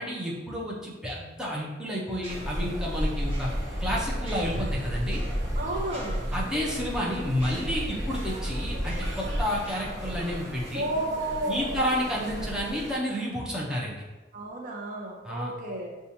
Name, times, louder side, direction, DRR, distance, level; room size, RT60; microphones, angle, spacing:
voice 1, 0.0-3.5 3.8-5.2 6.3-10.8 11.5-14.0 15.2-15.5, equal, 5° right, -5 dB, 0.7 m, -30 dB
sound 1, 2.1-11.5 11.8-12.0, equal, 30° right, 1.3 m, -49 dB
sound 2, 2.3-13.0, equal, 75° right, 1.0 m, -32 dB
voice 2, 5.6-6.2 10.7-11.8 14.3-15.9, right 1 dB, 50° right, -1 dB, 0.7 m, -32 dB
6.7 x 2.4 x 2.8 m, 1.1 s
head